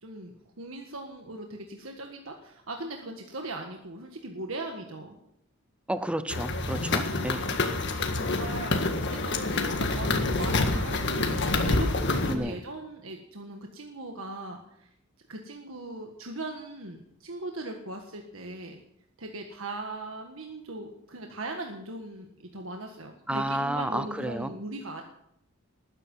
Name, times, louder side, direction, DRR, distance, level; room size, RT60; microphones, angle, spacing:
voice 1, 0.0-5.1 7.1-7.6 8.0-8.8 9.1-14.9 15.3-18.8 19.2-25.0, right 2 dB, 70° right, 3 dB, 1.6 m, -39 dB
voice 2, 5.9-7.5 12.3-12.6 23.3-24.5, right 1 dB, 5° right, 12 dB, 0.6 m, -31 dB
sound 1, 6.3-12.4, left 2 dB, 55° left, 1.7 m, -27 dB
19.5 x 9.9 x 5.5 m, 0.75 s
head